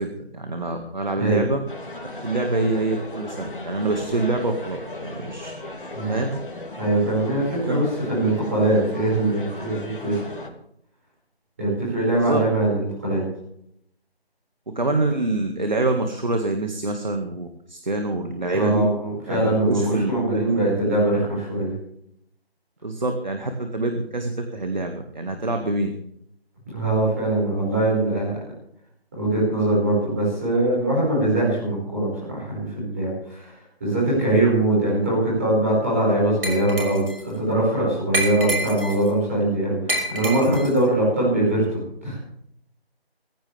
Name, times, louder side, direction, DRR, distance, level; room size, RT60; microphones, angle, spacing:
voice 1, 0.0-1.6 2.2-5.5 6.1-6.4 7.6-7.8 12.1-12.4 14.8-18.9 19.3-20.6 22.8-25.9, right 2 dB, 45° right, 4 dB, 2.0 m, -26 dB
sound 1, 1.7-10.5, left 2 dB, 55° left, 3.2 m, -36 dB
voice 2, 6.8-10.2 11.6-13.2 18.5-21.7 26.7-28.4 29.2-33.5 33.8-42.2, right 1 dB, 15° right, -8 dB, 5.7 m, -22 dB
Glass, 36.4-37.2 38.1-39.1 39.9-40.8, right 1 dB, 60° right, 6.2 m, -27 dB
21.5 x 15.5 x 3.5 m, 0.71 s
figure-of-eight pair, 180°, 32 cm